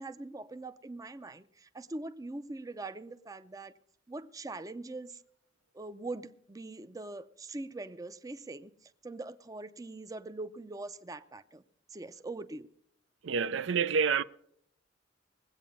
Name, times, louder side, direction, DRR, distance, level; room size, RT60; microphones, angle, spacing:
voice 1, 0.0-3.7 4.1-5.2 5.7-11.6 11.9-12.7, right 2 dB, 20° right, 0.5 m, -42 dB
voice 2, 13.2-14.2, right 6 dB, 75° right, 0.5 m, -28 dB
20.5 x 8.5 x 5.4 m
head